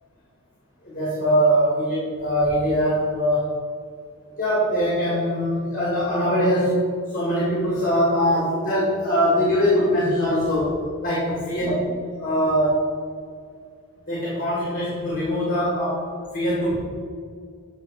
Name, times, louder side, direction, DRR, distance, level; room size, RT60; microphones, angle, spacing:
voice 1, 0.8-3.5 4.3-6.8 7.1-11.8 12.2-12.8 14.1-16.1 16.3-16.8, equal, 40° left, -7 dB, 2.3 m, -22 dB
8.1 x 6.0 x 4.8 m, 2.2 s
head